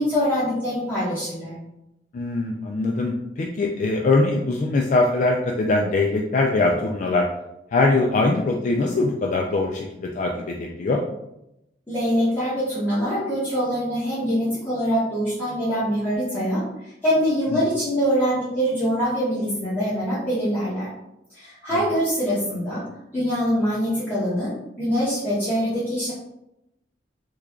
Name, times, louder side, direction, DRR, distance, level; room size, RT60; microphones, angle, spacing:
voice 1, 0.0-1.6 11.9-16.6 17.0-20.9 21.3-22.8 23.1-24.5 24.8-26.1, equal, 10° left, -13 dB, 1.1 m, -24 dB
voice 2, 2.1-7.3 7.7-11.0 17.5-17.6, left 2 dB, 45° left, 0 dB, 0.3 m, -22 dB
3.2 x 2.4 x 3.5 m, 0.86 s
head